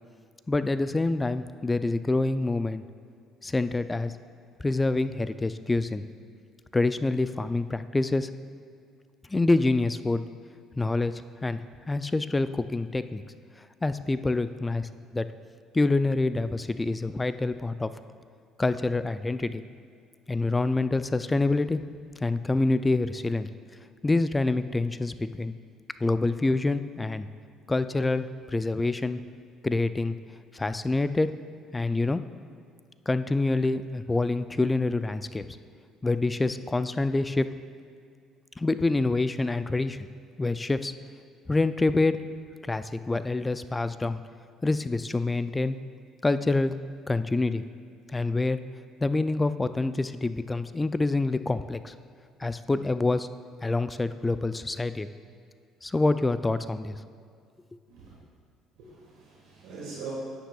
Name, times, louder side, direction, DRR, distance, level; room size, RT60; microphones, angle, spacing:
voice 1, 0.5-2.8 3.4-4.1 4.6-6.0 6.7-8.3 9.3-10.2 10.8-11.6 11.9-13.2 13.8-15.3 15.7-17.9 18.6-19.6 20.3-21.8 22.2-23.5 24.0-25.5 26.0-27.3 27.7-29.2 29.6-30.2 30.5-31.3 31.7-32.2 33.1-35.5 36.0-37.5 38.6-40.1 40.4-40.9 41.5-42.2 42.7-44.2 44.6-45.8 46.2-46.7 47.1-47.6 48.1-48.6 49.0-51.9 52.4-53.3 53.6-55.1 55.8-57.0, left 2 dB, 15° left, 12 dB, 0.3 m, -26 dB
voice 2, 58.8-60.1, right 5 dB, 85° right, -5 dB, 1.5 m, -42 dB
9.8 x 8.9 x 2.3 m, 2.3 s
supercardioid pair, 85°, 0 cm